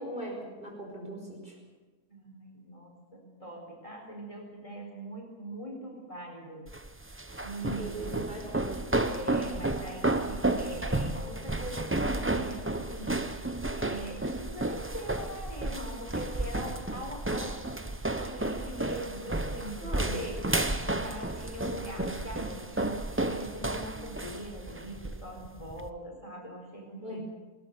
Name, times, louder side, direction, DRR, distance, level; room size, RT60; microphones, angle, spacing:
voice 1, 0.0-1.5 7.8-8.7 19.8-20.2 27.0-27.2, right 1 dB, 30° right, 0 dB, 5.4 m, -39 dB
voice 2, 2.1-6.6 7.4-8.2 9.1-13.2 13.8-17.7 18.2-27.2, right 1 dB, 20° left, 0 dB, 4.5 m, -42 dB
sound 1, 6.7-25.9, right 2 dB, 15° right, 0.4 m, -32 dB
20.0 x 19.5 x 6.8 m, 1.3 s
omnidirectional pair, 1.7 m